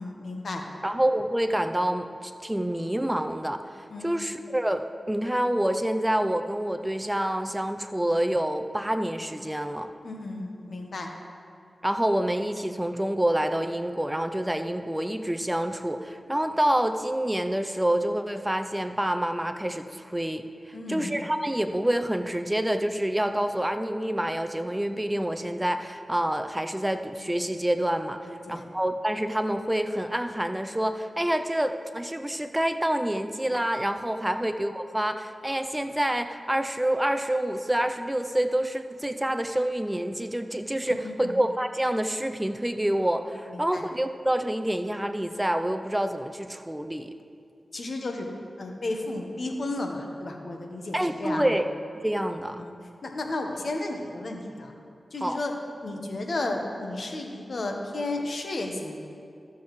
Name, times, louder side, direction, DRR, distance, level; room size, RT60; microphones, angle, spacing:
voice 1, 0.0-0.6 3.9-4.2 10.0-11.1 20.7-21.2 28.3-28.7 34.3-34.4 40.9-41.3 43.5-43.8 47.7-48.3 48.6-51.6 52.6-52.7 53.0-54.7 55.1-55.5 55.8-59.0, left 2 dB, 70° left, 2 dB, 1.1 m, -33 dB
voice 2, 0.8-9.9 11.8-47.1 50.9-51.7 51.9-52.6 55.2-55.4, right 1 dB, 10° right, 7 dB, 0.5 m, -27 dB
14.5 x 7.1 x 3.1 m, 2.4 s
cardioid pair, 55°, 0 cm